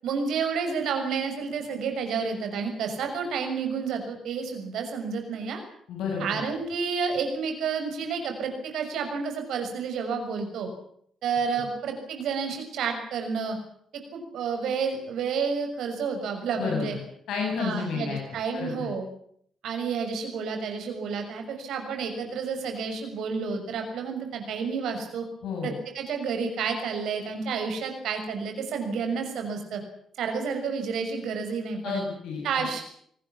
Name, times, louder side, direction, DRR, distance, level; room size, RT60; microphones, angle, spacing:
voice 1, 0.0-5.6 6.2-10.7 11.2-13.6 14.1-17.0 17.6-19.0 19.6-25.2 25.6-29.8 30.2-32.0 32.4-32.8, right 5 dB, 75° right, 5 dB, 6.3 m, -30 dB
voice 2, 5.9-6.2 16.6-17.0 17.3-18.2 18.5-18.9 25.4-25.7 31.8-32.6, left 5 dB, 75° left, 0 dB, 7.7 m, -31 dB
26.0 x 19.5 x 7.4 m, 0.67 s
hypercardioid pair, 45°, 0 cm